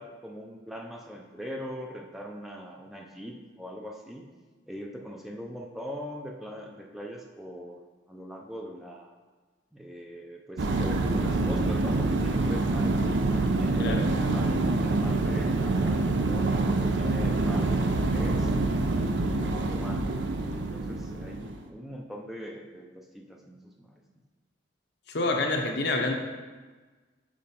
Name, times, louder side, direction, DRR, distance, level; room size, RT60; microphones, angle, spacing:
voice 1, 0.0-4.3 4.7-7.8 8.1-9.2 9.7-13.0 13.6-16.5 16.9-20.1 20.4-23.9, equal, ahead, 0 dB, 0.5 m, -41 dB
sound 1, 10.6-21.6, right 2 dB, 60° right, 0.5 m, -26 dB
voice 2, 25.1-26.1, left 2 dB, 55° left, 3 dB, 0.8 m, -27 dB
7.4 x 4.2 x 4.2 m, 1.3 s
head